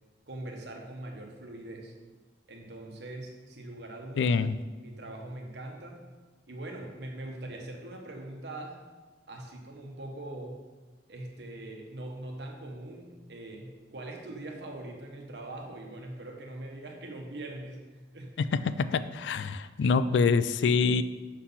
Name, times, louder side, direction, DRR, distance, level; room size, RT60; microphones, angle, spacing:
voice 1, 0.3-1.9 2.5-4.4 4.8-6.1 6.5-8.9 9.3-10.6 11.1-17.8 18.1-18.3, right 1 dB, 70° right, 1 dB, 1.1 m, -42 dB
voice 2, 4.2-4.6 18.4-21.0, left 4 dB, 80° left, 13 dB, 0.3 m, -25 dB
6.5 x 3.9 x 5.6 m, 1.3 s
head